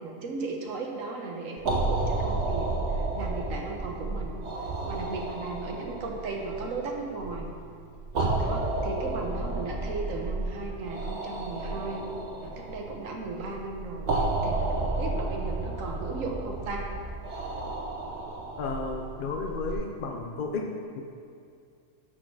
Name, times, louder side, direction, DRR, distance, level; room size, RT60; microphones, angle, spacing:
voice 1, 0.0-4.4 4.8-7.5 8.4-12.1 12.4-14.1 14.4-16.9, right 3 dB, 90° right, 1 dB, 1.4 m, -36 dB
sound 1, 1.6-19.7, right 2 dB, 65° right, 1.2 m, -32 dB
voice 2, 18.6-21.0, left 4 dB, 55° left, 2 dB, 0.6 m, -33 dB
12.5 x 4.3 x 4.7 m, 2.4 s
omnidirectional pair, 1.3 m